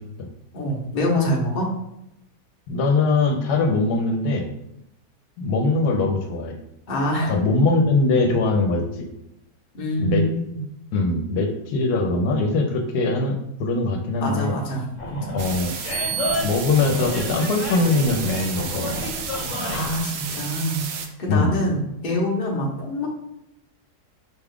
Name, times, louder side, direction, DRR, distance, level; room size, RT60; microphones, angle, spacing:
voice 1, 0.5-1.7 6.9-7.3 9.7-10.6 14.2-15.4 19.6-20.8 21.2-23.1, equal, 40° left, -1 dB, 0.8 m, -25 dB
voice 2, 2.7-4.5 5.4-6.6 7.3-9.1 10.0-10.2 10.9-14.6 15.3-15.7 16.4-19.0 21.3-21.6, left 3 dB, 80° left, 3 dB, 1.1 m, -21 dB
Animal, 15.0-20.0, left 1 dB, 60° left, 1.0 m, -30 dB
sound 1, 15.4-21.1, right 6 dB, 85° right, 0.5 m, -31 dB
4.6 x 2.4 x 3.5 m, 0.84 s
omnidirectional pair, 1.7 m